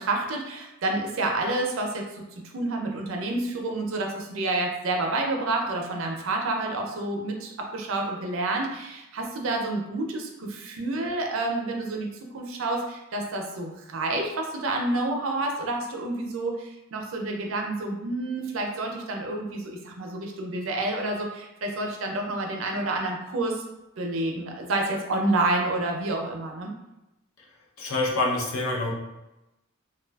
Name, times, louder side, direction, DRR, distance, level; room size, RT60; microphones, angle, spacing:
voice 1, 0.0-12.1 12.3-23.6 24.0-26.7, right 2 dB, 75° right, 2 dB, 0.5 m, -29 dB
voice 2, 27.8-28.9, left 2 dB, 80° left, -1 dB, 0.6 m, -26 dB
2.6 x 2.4 x 2.2 m, 0.94 s
head